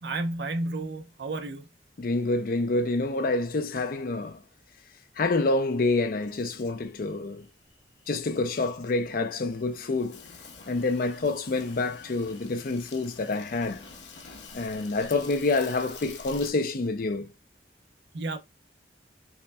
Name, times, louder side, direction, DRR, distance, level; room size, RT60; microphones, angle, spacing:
voice 1, 0.0-1.7 18.1-18.4, right 2 dB, 75° right, 0.6 m, -32 dB
voice 2, 2.0-4.4 5.2-7.5 8.1-10.2 10.7-13.8 14.5-17.3, left 3 dB, 50° left, 0.5 m, -27 dB
Insect, 5.9-16.5, left 5 dB, 90° left, 0.8 m, -48 dB
5.6 x 2.1 x 2.2 m
head